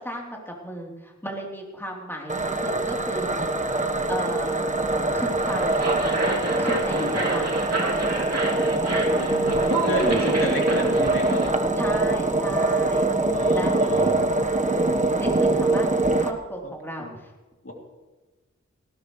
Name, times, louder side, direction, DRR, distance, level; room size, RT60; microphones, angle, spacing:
voice 1, 0.0-3.3 4.1-4.6 5.1-5.9 6.3-7.6 8.8-9.2 11.8-13.1 13.5-14.2 14.6-17.3, equal, 10° left, -1 dB, 3.5 m, -35 dB
sound 1, 2.3-16.3, right 2 dB, 25° right, 1.3 m, -23 dB
sound 2, 5.3-11.5, right 2 dB, 55° right, 3.0 m, -29 dB
voice 2, 9.2-11.4 13.3-14.0 16.6-16.7 17.0-17.1 17.6-17.7, equal, 45° left, -1 dB, 3.0 m, -31 dB
19.0 x 17.0 x 3.3 m, 1.2 s
wide cardioid pair, 65°, 29 cm